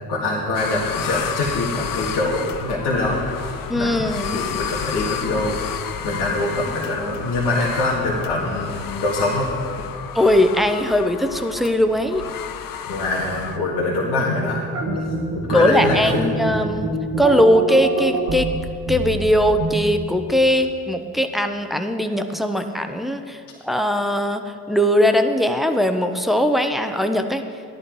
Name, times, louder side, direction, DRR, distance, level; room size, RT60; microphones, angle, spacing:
voice 1, 0.1-3.2 3.8-5.6 6.0-9.5 12.9-15.0 15.3-16.4, left 2 dB, 70° left, -5 dB, 2.1 m, -24 dB
sound 1, 0.5-13.6, left 8 dB, 50° left, 0.8 m, -31 dB
voice 2, 3.7-4.4 10.1-12.3 15.5-18.5 18.9-27.4, equal, ahead, 6 dB, 1.0 m, -20 dB
sound 2, 14.7-20.0, right 2 dB, 80° right, 1.7 m, -26 dB
13.5 x 11.0 x 4.7 m, 2.3 s
hypercardioid pair, 45°, 43 cm